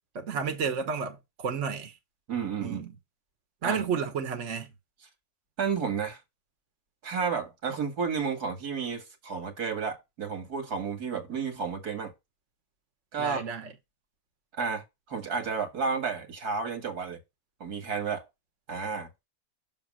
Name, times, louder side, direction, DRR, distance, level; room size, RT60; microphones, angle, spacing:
voice 1, 0.1-1.9 2.6-2.9 3.6-4.7 13.2-13.7, right 6 dB, 55° right, 1.5 m, -31 dB
voice 2, 2.3-2.8 3.6-3.8 5.6-6.2 7.0-12.1 13.1-13.5 14.6-17.2 17.6-18.2 18.7-19.1, right 5 dB, 90° right, 2.4 m, -31 dB
6.6 x 3.6 x 6.2 m
omnidirectional pair, 1.6 m